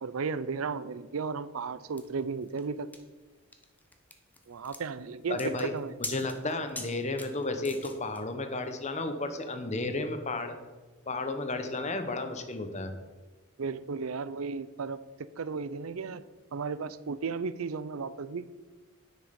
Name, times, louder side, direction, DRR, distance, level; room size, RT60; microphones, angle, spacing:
voice 1, 0.0-2.9 4.5-5.9 13.6-15.0 15.4-16.2 16.5-18.5, right 5 dB, 80° right, 15 dB, 0.5 m, -34 dB
sound 1, 2.0-8.2, left 2 dB, 10° left, 0.8 m, -44 dB
voice 2, 5.3-5.7 6.1-10.6 11.1-12.9, left 2 dB, 35° left, 8 dB, 0.9 m, -33 dB
9.9 x 6.3 x 5.3 m, 1.3 s
head